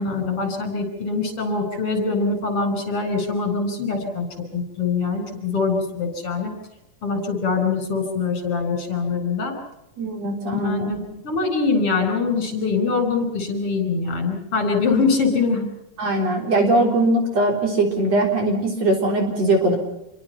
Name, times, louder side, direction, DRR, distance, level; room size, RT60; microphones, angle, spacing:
voice 1, 0.0-4.3 4.5-6.5 7.0-9.5 10.5-15.7, left 4 dB, 40° left, 6 dB, 5.6 m, -23 dB
voice 2, 10.0-10.9 16.0-19.8, right 2 dB, 50° right, 3 dB, 4.9 m, -20 dB
27.5 x 23.5 x 5.7 m, 0.87 s
omnidirectional pair, 3.9 m